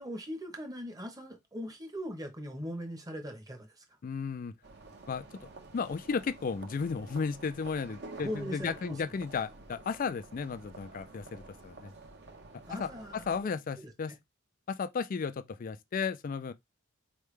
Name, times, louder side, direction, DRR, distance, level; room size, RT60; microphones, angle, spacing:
voice 1, 0.0-3.8 8.2-9.0 12.7-13.5, equal, 15° right, 1.0 m, -40 dB
voice 2, 4.0-4.5 5.1-11.9 12.7-14.1 14.7-16.5, left 5 dB, 40° left, 0.3 m, -34 dB
sound 1, 4.6-13.4, right 3 dB, 50° right, 1.0 m, -50 dB
4.6 x 3.2 x 3.2 m
head